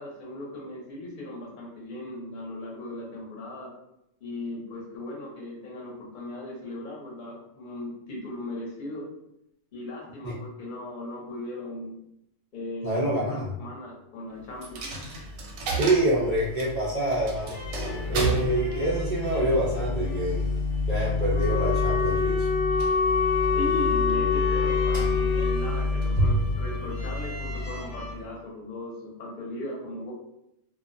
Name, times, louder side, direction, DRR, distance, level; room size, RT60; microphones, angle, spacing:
voice 1, 0.0-3.7 4.2-9.1 9.7-12.0 12.5-14.8 23.5-30.1, left 1 dB, 45° left, -3 dB, 0.8 m, -38 dB
voice 2, 12.8-13.5 15.7-17.6 18.1-20.4 20.9-22.5, right 1 dB, 60° right, -7 dB, 0.4 m, -26 dB
Coin (dropping), 14.6-28.3, left 2 dB, 90° right, 1.0 m, -29 dB
sound 1, 17.4-28.1, left 1 dB, 80° left, 1.0 m, -43 dB
Wind instrument woodwind instrument, 21.3-25.6, left 5 dB, 5° left, 0.7 m, -25 dB
2.4 x 2.0 x 2.5 m, 0.82 s
omnidirectional pair, 1.3 m